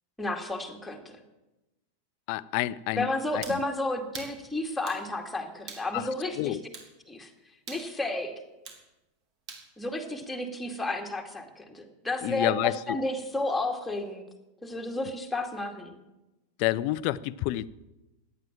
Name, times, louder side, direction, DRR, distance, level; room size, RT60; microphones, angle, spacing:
voice 1, 0.2-1.2 2.9-6.6 7.1-7.3 7.7-8.3 9.8-14.2 14.6-15.9, left 2 dB, 5° left, 2.4 m, -32 dB
voice 2, 2.3-3.1 3.3-3.4 5.9-6.1 6.4-6.6 12.2-13.0 16.6-17.7, left 16 dB, 45° left, 0.6 m, -28 dB
sound 1, 3.4-3.6 4.1-4.4 4.9-5.0 5.7-5.9 6.7-6.9 7.7-7.9 8.7-8.8 9.5-9.7, right 5 dB, 40° right, 3.1 m, -42 dB
16.5 x 10.5 x 7.4 m
figure-of-eight pair, 90°, 0 cm